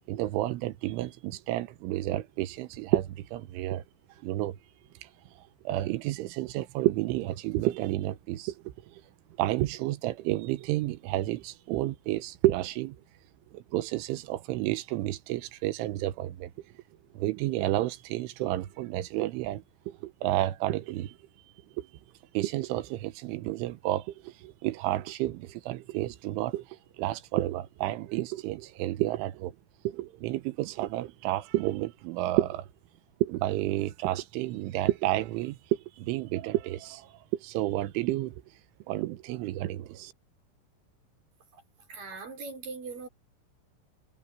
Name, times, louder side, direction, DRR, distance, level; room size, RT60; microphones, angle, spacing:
voice 1, 0.1-3.8 4.2-4.6 5.0-5.1 5.7-9.0 9.4-13.0 13.5-16.5 17.2-21.2 21.8-21.9 22.4-26.7 27.0-29.5 29.9-32.7 33.2-37.1 37.4-38.4 38.9-40.1, right 16 dB, 90° right, 3.5 m, -30 dB
voice 2, 41.9-43.1, right 4 dB, 50° right, 6.4 m, -40 dB
omnidirectional pair, 5.4 m